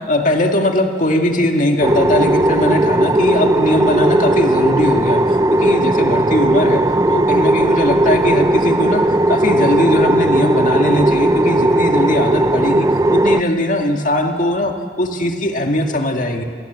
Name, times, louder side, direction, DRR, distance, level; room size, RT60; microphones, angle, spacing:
voice 1, 0.0-5.2 5.5-6.8 7.1-9.0 9.3-16.4, left 1 dB, 45° left, 4 dB, 2.0 m, -19 dB
sound 1, 1.8-13.4, right 1 dB, 20° right, 0.5 m, -16 dB
26.0 x 19.0 x 8.1 m, 2.1 s
head